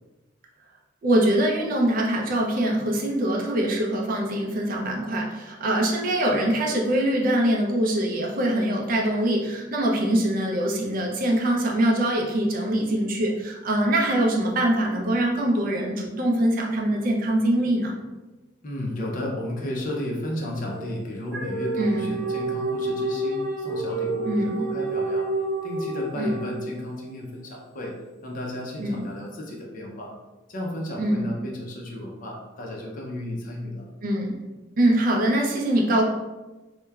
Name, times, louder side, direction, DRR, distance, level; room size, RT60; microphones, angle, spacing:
voice 1, 1.0-17.9 21.8-22.1 24.2-24.7 26.2-26.4 28.8-29.1 31.0-31.3 34.0-34.4 34.8-36.0, right 1 dB, 50° right, -1 dB, 0.4 m, -23 dB
voice 2, 18.6-25.3 25.6-27.9 28.2-30.1 30.5-33.9, left 1 dB, 45° left, -2 dB, 0.5 m, -33 dB
sound 1, 20.7-27.0, right 2 dB, 70° right, 0.8 m, -29 dB
2.9 x 2.1 x 2.3 m, 1.2 s
head